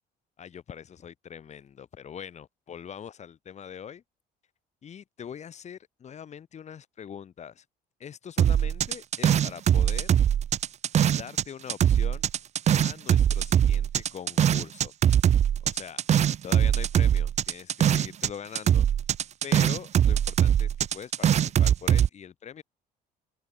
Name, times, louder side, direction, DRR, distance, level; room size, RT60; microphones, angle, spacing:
voice 1, 0.4-4.0 4.8-7.6 8.0-10.1 11.2-12.3 12.8-14.9 15.6-16.0 16.4-18.9 19.4-22.6, left 8 dB, 45° left, 1.8 m, -42 dB
sound 1, 8.4-11.4 11.7-18.3 18.5-22.1, right 9 dB, 40° right, 0.6 m, -22 dB
open air
cardioid pair, 110°, 17 cm